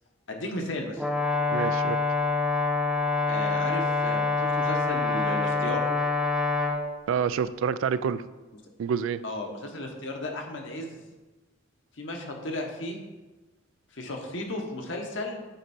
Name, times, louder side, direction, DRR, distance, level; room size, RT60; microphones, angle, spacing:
voice 1, 0.3-1.0 3.3-5.9 9.2-11.0 12.0-13.0 13.9-15.5, left 1 dB, 65° left, 2 dB, 1.1 m, -34 dB
Brass instrument, 1.0-6.8, left 3 dB, 5° right, 0.7 m, -26 dB
voice 2, 1.5-2.0 7.1-8.2 8.8-9.2, right 7 dB, 75° right, 15 dB, 0.3 m, -27 dB
8.0 x 4.5 x 4.3 m, 1.2 s
head